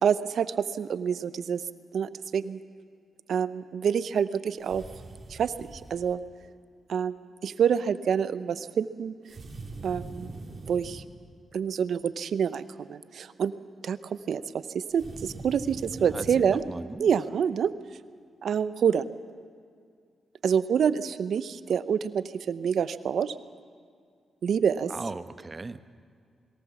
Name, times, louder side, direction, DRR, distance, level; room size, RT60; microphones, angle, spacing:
voice 1, 0.0-1.6 1.9-2.6 3.3-4.8 5.3-6.2 6.9-9.1 9.8-10.3 10.7-11.0 11.5-13.5 13.8-16.6 17.0-17.7 18.4-19.1 20.4-23.3 24.4-24.9, right 7 dB, 70° right, 14 dB, 0.7 m, -27 dB
sound 1, 4.6-6.1 9.3-11.1 14.9-16.6, right 2 dB, 50° right, 3.0 m, -42 dB
voice 2, 16.0-17.2 24.9-25.8, right 3 dB, 35° right, 11 dB, 1.0 m, -38 dB
21.5 x 18.0 x 7.2 m, 2.2 s
supercardioid pair, 55°, 0 cm